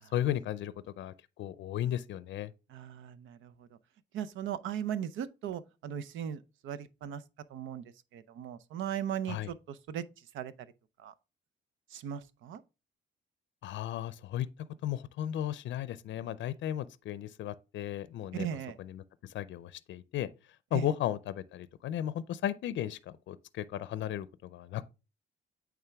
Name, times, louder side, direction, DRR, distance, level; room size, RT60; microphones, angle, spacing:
voice 1, 0.1-2.5 9.3-9.5 13.6-14.5 14.8-18.5 18.8-20.3 20.7-24.8, left 11 dB, 70° left, 0.5 m, -35 dB
voice 2, 2.7-3.8 4.1-7.2 7.5-10.5 11.0-11.1 11.9-12.6 18.3-18.8 20.7-20.9, right 9 dB, 80° right, 0.6 m, -38 dB
8.8 x 3.6 x 3.5 m
cardioid pair, 90°, 20 cm